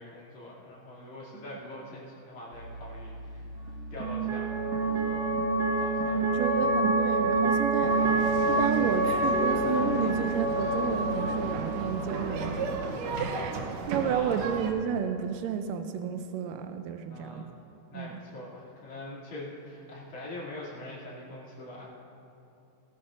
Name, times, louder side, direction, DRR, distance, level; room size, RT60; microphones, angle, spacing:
voice 1, 0.0-3.5 3.9-5.4 5.8-6.6 13.1-13.5 14.0-14.5 17.1-17.6 17.9-21.9, left 1 dB, 65° left, -7 dB, 3.9 m, -43 dB
sound 1, 2.5-12.9, right 2 dB, 45° right, 1.3 m, -28 dB
voice 2, 6.1-8.0 8.5-12.7 13.2-13.5 13.9-17.5 17.9-18.2, right 8 dB, 90° right, 7 dB, 2.3 m, -31 dB
sound 2, 7.8-14.7, right 4 dB, 70° right, 1.7 m, -35 dB
18.5 x 14.0 x 2.5 m, 2.9 s
omnidirectional pair, 3.8 m